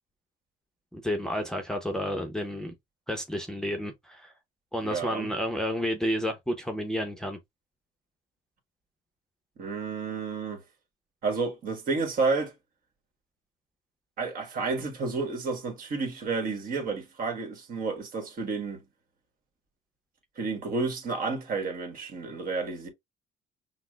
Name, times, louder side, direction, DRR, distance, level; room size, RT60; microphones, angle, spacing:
voice 1, 0.9-2.7 3.1-4.3 4.7-7.4, equal, 5° left, 0.7 m, -31 dB
voice 2, 4.8-5.3 9.6-10.6 11.2-12.5 14.2-18.8 20.4-22.9, right 4 dB, 55° right, 1.5 m, -31 dB
5.8 x 2.1 x 2.2 m
cardioid pair, 110°, 17 cm